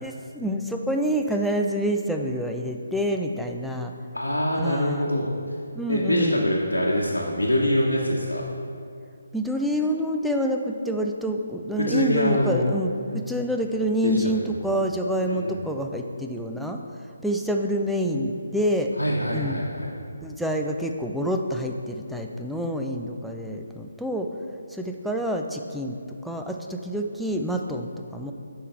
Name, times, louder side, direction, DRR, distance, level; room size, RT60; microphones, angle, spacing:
voice 1, 0.0-3.9 4.6-5.1 5.7-6.4 9.3-16.8 17.2-18.9 19.3-19.6 20.2-24.3 24.7-26.0 26.2-28.3, equal, ahead, 2 dB, 0.4 m, -27 dB
voice 2, 4.1-5.5 5.9-8.4 11.8-12.7 13.1-13.2 14.0-14.6 15.2-15.6 19.0-19.9, equal, 90° left, -5 dB, 1.0 m, -24 dB
8.3 x 5.6 x 4.5 m, 2.4 s
figure-of-eight pair, 145°, 0 cm